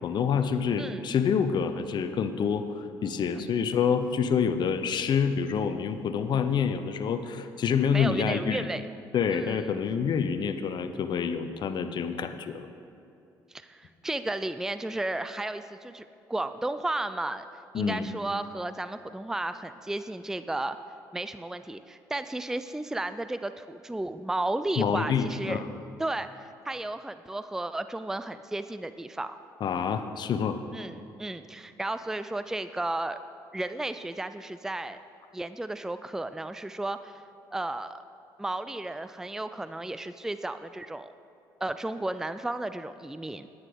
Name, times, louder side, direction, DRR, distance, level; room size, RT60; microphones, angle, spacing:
voice 1, 0.0-8.7 9.1-12.7 17.7-18.1 24.8-25.7 29.6-30.6, left 6 dB, 55° left, 10 dB, 0.8 m, -27 dB
voice 2, 7.9-8.9 9.3-9.7 13.5-17.5 17.7-20.8 21.1-25.6 26.0-26.3 26.6-29.4 30.7-33.2 33.5-35.0 35.3-37.2 37.5-38.0 38.4-41.1 41.6-43.5, right 2 dB, 5° right, 12 dB, 0.4 m, -33 dB
9.7 x 9.6 x 5.2 m, 2.6 s
supercardioid pair, 65°, 9 cm